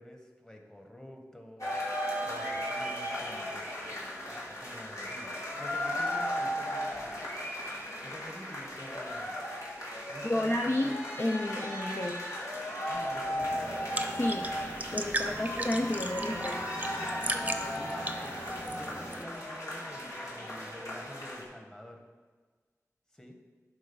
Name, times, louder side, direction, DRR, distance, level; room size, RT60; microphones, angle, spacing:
voice 1, 0.0-4.0 4.3-5.3 5.6-9.4 10.1-10.9 12.9-13.8 15.1-15.5 17.0-22.1 23.1-23.3, equal, 10° left, 2 dB, 1.4 m, -48 dB
sound 1, 1.6-21.4, equal, 65° left, 2.1 m, -36 dB
voice 2, 10.2-10.9 11.2-12.2 14.2-14.5 14.9-16.6, left 1 dB, 45° left, 1 dB, 0.6 m, -31 dB
sound 2, 13.4-19.2, right 1 dB, 25° right, 0.8 m, -37 dB
11.5 x 3.9 x 5.5 m, 1.5 s
cardioid pair, 40°, 6 cm